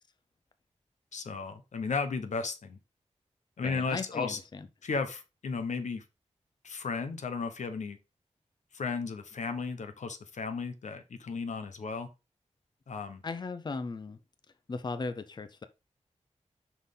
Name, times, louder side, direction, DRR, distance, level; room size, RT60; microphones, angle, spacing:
voice 1, 1.1-2.8 3.6-4.4 4.8-6.0 6.6-8.0 8.7-12.1 12.9-13.2, left 4 dB, 90° left, 1.0 m, -34 dB
voice 2, 3.6-4.7 13.2-14.2 14.7-15.6, left 4 dB, 35° left, 0.6 m, -37 dB
6.0 x 5.6 x 3.7 m
wide cardioid pair, 135°, 12 cm